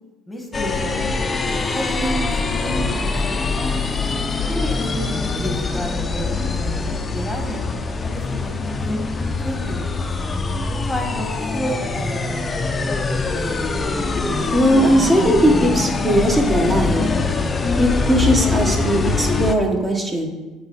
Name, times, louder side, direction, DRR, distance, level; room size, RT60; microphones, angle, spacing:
voice 1, 0.3-1.2 1.7-3.9 4.5-6.3 6.6-7.6 8.0-9.0 9.4-10.2 10.7-12.7, equal, 5° left, 2 dB, 1.3 m, -31 dB
sound 1, 0.5-19.6, left 3 dB, 25° left, 0.5 m, -23 dB
voice 2, 14.5-17.1 17.8-20.3, equal, 20° right, 2 dB, 1.2 m, -18 dB
8.5 x 3.1 x 4.0 m, 1.2 s
supercardioid pair, 85°, 0 cm